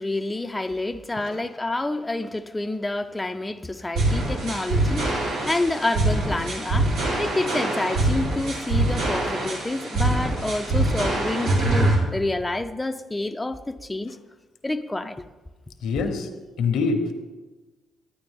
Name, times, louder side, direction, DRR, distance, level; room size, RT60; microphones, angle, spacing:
voice 1, 0.0-14.2 14.6-15.2, left 2 dB, 15° left, 0.4 m, -28 dB
sound 1, 4.0-12.0, right 2 dB, 85° right, 3.4 m, -24 dB
voice 2, 15.8-16.3 16.6-17.1, left 4 dB, 85° left, 1.1 m, -25 dB
10.5 x 9.0 x 3.5 m
cardioid pair, 90°, 0 cm